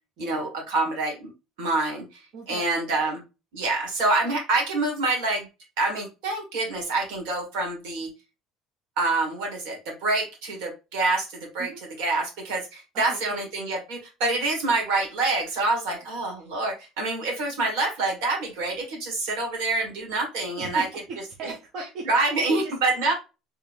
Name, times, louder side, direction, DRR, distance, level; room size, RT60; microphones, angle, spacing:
voice 1, 0.2-1.3 1.6-2.0 2.5-3.2 3.5-5.5 5.8-8.1 9.0-11.7 12.0-20.9 21.4-21.5 22.1-23.1, right 3 dB, 85° right, 1 dB, 1.8 m, -26 dB
voice 2, 2.3-3.1 11.6-11.8 13.1-13.4 15.9-16.0 20.6-22.1 22.5-22.7, right 3 dB, 60° right, 0 dB, 0.8 m, -38 dB
3.5 x 3.4 x 2.6 m, 0.28 s
cardioid pair, 115°, 0 cm